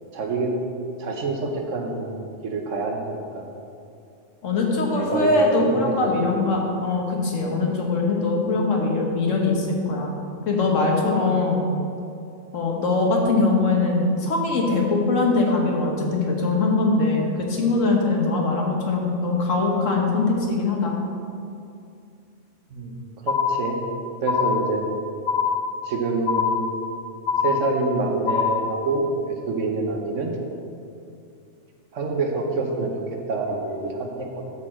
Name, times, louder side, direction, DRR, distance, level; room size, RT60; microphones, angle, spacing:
voice 1, 0.1-0.5 1.0-3.4 4.9-5.7 22.7-22.9 23.2-23.8 24.2-24.8 25.8-26.7 27.4-29.1 29.5-30.3 31.9-32.9 33.3-34.5, right 3 dB, 75° right, 2 dB, 1.3 m, -26 dB
voice 2, 4.4-10.2 10.4-11.6 12.5-20.9, left 3 dB, 80° left, 0 dB, 1.6 m, -22 dB
sound 1, 23.3-23.9 24.3-24.9 25.3-25.9 26.3-26.9 27.3-27.9 28.3-28.8, left 6 dB, 65° left, 1.1 m, -23 dB
12.5 x 4.6 x 4.3 m, 2.5 s
omnidirectional pair, 1.3 m